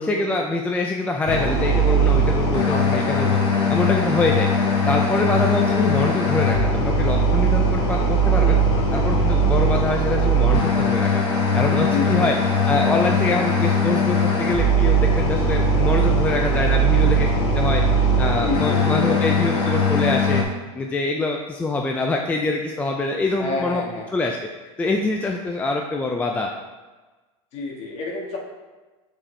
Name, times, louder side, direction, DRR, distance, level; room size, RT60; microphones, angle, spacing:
voice 1, 0.0-3.4 3.7-4.5 4.9-8.5 8.9-11.2 11.5-12.3 12.7-17.3 17.5-20.4 20.7-23.8 24.1-24.4 24.8-26.5, left 2 dB, 10° left, 1 dB, 0.3 m, -24 dB
sound 1, 1.3-20.4, right 1 dB, 60° left, 1.3 m, -20 dB
voice 2, 2.7-3.2 5.2-5.3 8.4-8.9 11.9-12.3 18.4-19.3 23.4-24.1 27.5-28.4, left 3 dB, 40° left, -1 dB, 1.6 m, -29 dB
7.4 x 4.3 x 3.3 m, 1.2 s
supercardioid pair, 135°, 16 cm